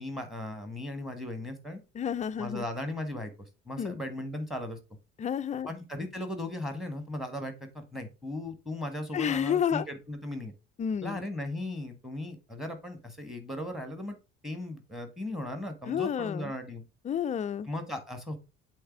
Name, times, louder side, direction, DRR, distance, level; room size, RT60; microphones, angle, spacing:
voice 1, 0.0-1.8 2.4-4.8 5.7-10.5 11.0-14.2 14.4-16.8 17.7-18.4, left 1 dB, ahead, 1.8 m, -37 dB
voice 2, 1.9-2.6 3.8-4.0 5.2-5.7 9.1-9.9 10.8-11.2 15.9-16.5 17.0-17.7, left 8 dB, 20° left, 0.4 m, -30 dB
7.8 x 3.4 x 4.7 m
figure-of-eight pair, 60°, 38 cm